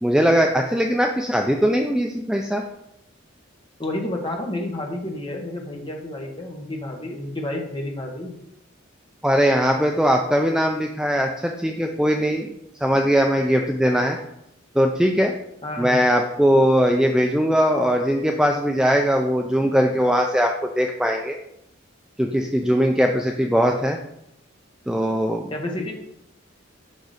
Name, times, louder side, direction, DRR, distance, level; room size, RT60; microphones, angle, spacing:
voice 1, 0.0-2.6 9.2-12.5 12.8-14.2 14.8-15.3 15.8-21.4 22.2-24.0 24.9-25.5, equal, 5° right, 2 dB, 0.4 m, -20 dB
voice 2, 3.8-8.3 15.6-16.0 25.5-25.9, left 1 dB, 25° left, 1 dB, 1.4 m, -30 dB
6.5 x 5.9 x 5.0 m, 0.81 s
head